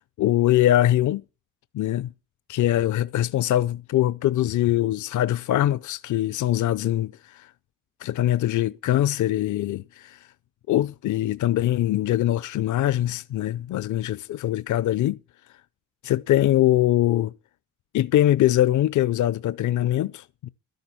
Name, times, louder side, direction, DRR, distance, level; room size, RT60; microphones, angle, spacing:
voice 1, 0.2-1.2 1.7-2.1 2.5-7.5 8.0-10.2 10.7-15.2 16.0-17.3 17.9-20.5, left 13 dB, 65° left, 0.6 m, -22 dB
12.5 x 10.5 x 7.0 m
cardioid pair, 115°, 32 cm